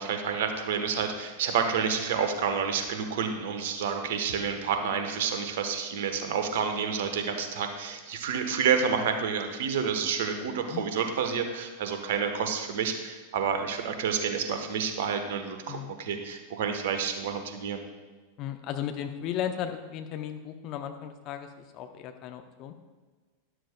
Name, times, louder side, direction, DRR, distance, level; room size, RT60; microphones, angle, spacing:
voice 1, 0.0-17.8, right 6 dB, 55° right, 7 dB, 1.1 m, -29 dB
voice 2, 18.4-21.5 21.7-22.7, left 9 dB, 40° left, 6 dB, 0.8 m, -35 dB
12.5 x 11.0 x 2.2 m, 1.3 s
figure-of-eight pair, 90°, 0 cm